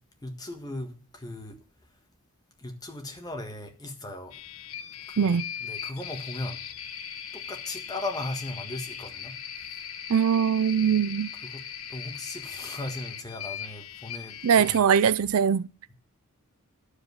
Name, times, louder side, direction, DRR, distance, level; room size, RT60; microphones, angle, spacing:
voice 1, 0.2-1.6 2.6-4.3 5.1-6.6 7.3-9.3 11.4-11.6 11.9-14.9, left 2 dB, 20° left, 1.6 m, -37 dB
sound 1, 4.3-14.8, left 8 dB, 75° left, 0.9 m, -39 dB
voice 2, 5.2-5.5 10.1-11.3 14.4-15.7, right 7 dB, 75° right, 0.4 m, -22 dB
11.5 x 5.0 x 8.3 m
head